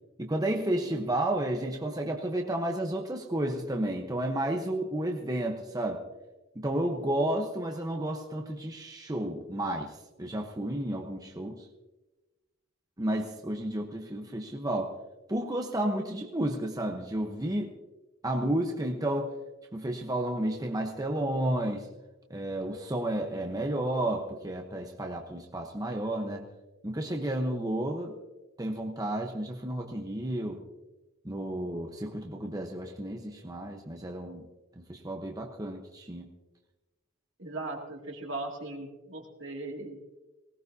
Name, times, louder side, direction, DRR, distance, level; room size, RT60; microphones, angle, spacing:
voice 1, 0.2-6.0 6.5-11.7 13.0-14.9 15.3-17.7 18.2-19.3 19.7-21.9 22.3-26.5 26.8-28.2 28.6-30.6 31.2-34.5 34.8-36.3, right 1 dB, 20° right, 2 dB, 0.9 m, -32 dB
voice 2, 37.4-40.0, right 2 dB, 65° right, 0 dB, 2.4 m, -38 dB
19.0 x 18.0 x 2.7 m, 1.1 s
head